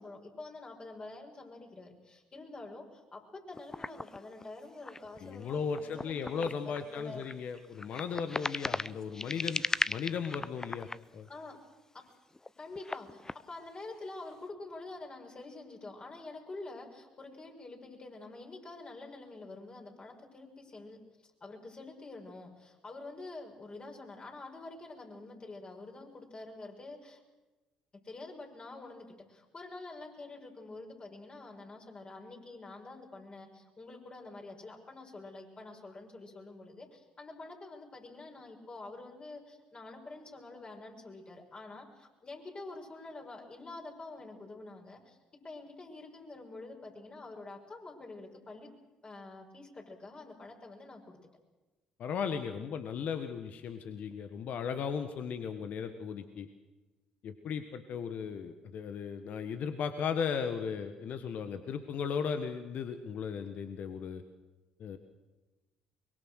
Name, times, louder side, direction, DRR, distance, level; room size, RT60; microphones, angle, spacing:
voice 1, 0.0-6.5 6.8-7.3 11.3-11.6 11.9-12.0 12.6-27.2 28.0-45.2 45.4-48.7 49.0-51.2, left 2 dB, 35° left, 1 dB, 6.3 m, -47 dB
sound 1, 3.5-11.7 12.1-13.4, left 2 dB, 20° left, 0.7 m, -38 dB
voice 2, 5.2-10.9 11.1-11.3 52.0-56.5 57.2-64.2 64.8-65.0, left 6 dB, 60° left, 8 dB, 1.5 m, -36 dB
24.0 x 22.0 x 6.5 m, 1.1 s
hypercardioid pair, 55°, 3 cm